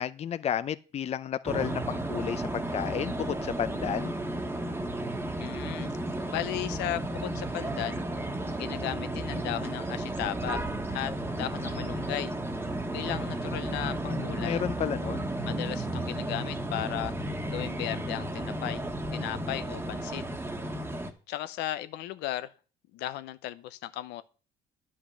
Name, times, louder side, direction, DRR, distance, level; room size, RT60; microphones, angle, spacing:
voice 1, 0.0-4.2 14.0-15.3, left 9 dB, 40° left, 0.5 m, -32 dB
sound 1, 1.5-21.1, right 1 dB, 15° right, 1.4 m, -33 dB
voice 2, 5.4-5.9 6.3-8.0 8.6-12.3 12.9-14.6 15.4-17.1 17.5-18.8 19.1-20.2 21.3-22.5 22.9-24.2, left 14 dB, 90° left, 0.7 m, -36 dB
10.0 x 5.7 x 6.4 m
cardioid pair, 110°, 17 cm